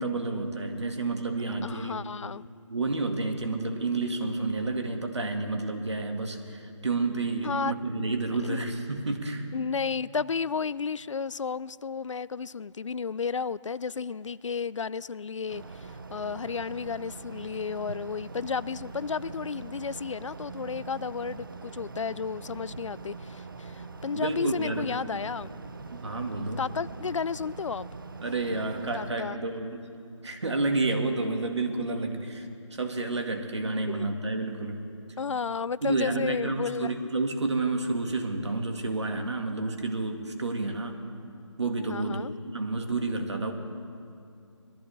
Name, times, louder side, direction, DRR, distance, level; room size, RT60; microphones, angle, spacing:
voice 1, 0.0-1.9 2.7-9.5 24.1-24.9 25.9-26.6 28.2-29.8 30.2-34.8 35.8-41.0 41.6-42.2 42.5-43.5, right 3 dB, 60° right, 4 dB, 1.9 m, -30 dB
voice 2, 1.6-2.4 7.4-7.7 8.4-8.6 9.5-25.5 26.6-27.9 28.9-29.4 33.9-34.1 35.2-36.9 41.9-42.3, left 5 dB, 70° left, 19 dB, 0.4 m, -33 dB
sound 1, 15.5-29.1, right 4 dB, 45° right, 0.7 m, -43 dB
22.5 x 14.0 x 3.4 m, 2.4 s
figure-of-eight pair, 170°, 16 cm